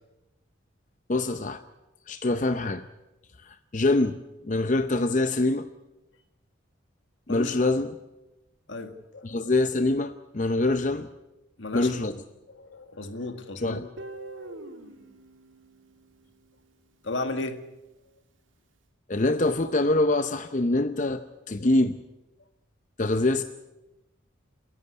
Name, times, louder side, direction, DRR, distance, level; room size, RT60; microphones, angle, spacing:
voice 1, 1.1-1.6 2.1-2.9 3.4-4.2 4.4-5.7 7.3-7.9 9.2-11.1 11.7-12.1 13.6-13.8 19.1-22.0 23.0-23.4, left 2 dB, 40° left, 10 dB, 0.6 m, -24 dB
voice 2, 7.3-7.7 8.7-9.4 11.6-12.2 12.5-13.8 17.0-17.6, left 3 dB, 75° left, 8 dB, 1.8 m, -34 dB
Guitar, 14.0-16.9, right 2 dB, 80° right, 2.4 m, -44 dB
29.0 x 11.0 x 9.5 m, 0.99 s
head